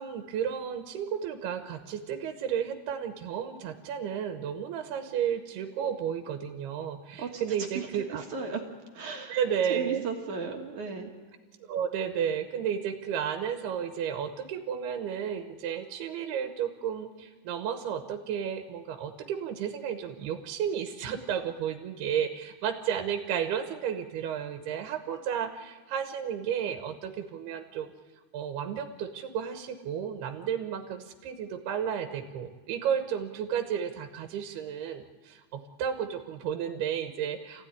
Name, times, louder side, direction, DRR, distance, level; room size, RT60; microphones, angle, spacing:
voice 1, 0.0-8.2 9.3-10.0 11.0-11.1 11.7-27.9 28.3-37.7, right 8 dB, 80° right, 6 dB, 3.1 m, -32 dB
voice 2, 7.7-8.6 8.9-9.4 9.7-11.1, right 5 dB, 55° right, 2 dB, 2.7 m, -35 dB
27.0 x 16.0 x 9.8 m, 1.4 s
omnidirectional pair, 4.6 m